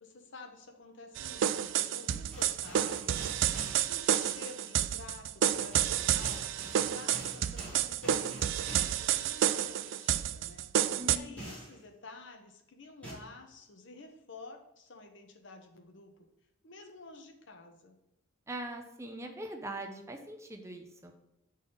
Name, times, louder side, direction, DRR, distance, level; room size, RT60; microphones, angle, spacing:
voice 1, 0.0-3.3 3.7-6.6 6.8-16.1 16.6-18.0, left 3 dB, 60° left, 4 dB, 1.0 m, -50 dB
sound 1, 1.2-11.2, right 10 dB, 65° right, 0.3 m, -30 dB
sound 2, 2.3-3.8 5.4-9.0 11.4-11.8 13.0-13.1, right 1 dB, 5° left, 2.6 m, -46 dB
voice 2, 11.0-11.4 18.5-21.1, right 1 dB, 15° right, 3 dB, 0.6 m, -42 dB
8.1 x 4.1 x 3.9 m, 0.86 s
head